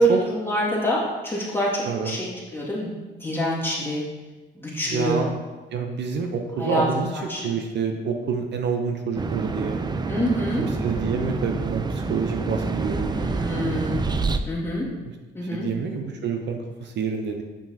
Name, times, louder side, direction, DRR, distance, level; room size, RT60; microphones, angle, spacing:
voice 1, 0.0-2.9 3.2-4.0 4.5-5.2 6.6-6.9 7.1-7.5 10.1-10.7 13.1-14.0 14.5-14.9 15.3-15.7, equal, 10° left, -6 dB, 2.1 m, -26 dB
voice 2, 1.9-2.2 4.9-5.3 5.7-7.1 7.4-9.8 10.6-13.2 15.4-17.4, right 5 dB, 60° right, 4 dB, 0.7 m, -27 dB
sound 1, 9.2-14.4, right 4 dB, 20° right, 0.4 m, -27 dB
7.0 x 5.7 x 2.8 m, 1.2 s
cardioid pair, 90°, 20 cm